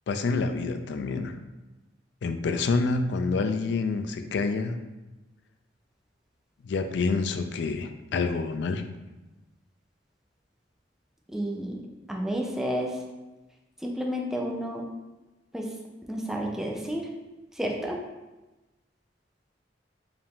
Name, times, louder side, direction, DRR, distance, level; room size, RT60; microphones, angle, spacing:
voice 1, 0.1-1.4 2.2-4.8 6.6-8.8, left 4 dB, 65° left, 8 dB, 0.4 m, -27 dB
voice 2, 11.3-11.8 12.1-13.0 13.8-14.8 15.5-15.7 16.1-17.1 17.5-18.0, equal, 5° right, -1 dB, 0.5 m, -30 dB
4.8 x 2.5 x 3.5 m, 1.1 s
head